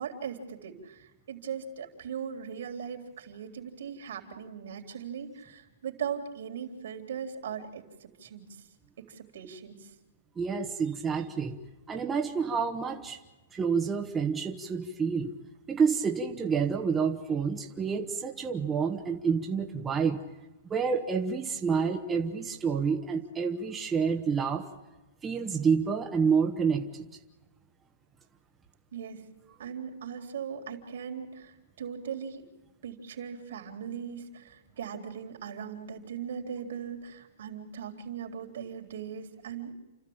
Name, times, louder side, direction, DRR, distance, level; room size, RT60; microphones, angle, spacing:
voice 1, 0.0-8.7 9.0-9.9 28.9-29.2 29.6-32.4 32.8-39.7, right 7 dB, 70° right, 2 dB, 3.7 m, -39 dB
voice 2, 10.4-11.6 11.9-13.2 13.5-15.3 15.7-20.2 20.7-24.6 25.2-27.1, right 6 dB, 15° right, 2 dB, 1.3 m, -28 dB
30.0 x 13.0 x 8.8 m, 1.1 s
hypercardioid pair, 155°, 0 cm